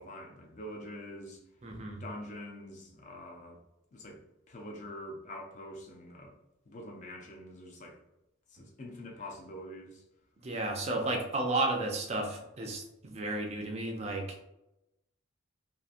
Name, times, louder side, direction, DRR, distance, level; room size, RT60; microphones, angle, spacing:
voice 1, 0.0-1.4 2.0-3.6 3.9-4.2 4.5-6.3 6.7-8.0 8.5-10.0, left 1 dB, 35° left, 0 dB, 0.4 m, -45 dB
voice 2, 1.6-2.0 10.4-14.3, right 2 dB, 30° right, 2 dB, 0.4 m, -33 dB
2.7 x 2.5 x 2.4 m, 0.91 s
head